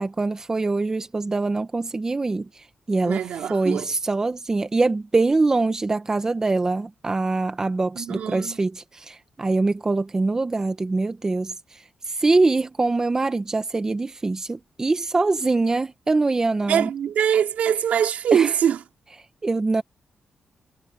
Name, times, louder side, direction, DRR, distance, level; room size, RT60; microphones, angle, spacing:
voice 1, 0.0-3.2 3.5-11.5 12.1-16.9 18.3-18.5 19.4-19.8, right 3 dB, 25° right, 1.1 m, -23 dB
voice 2, 3.0-3.9 8.0-8.6 16.7-18.8, right 8 dB, 85° right, 3.0 m, -23 dB
cardioid pair, 105°, 2 cm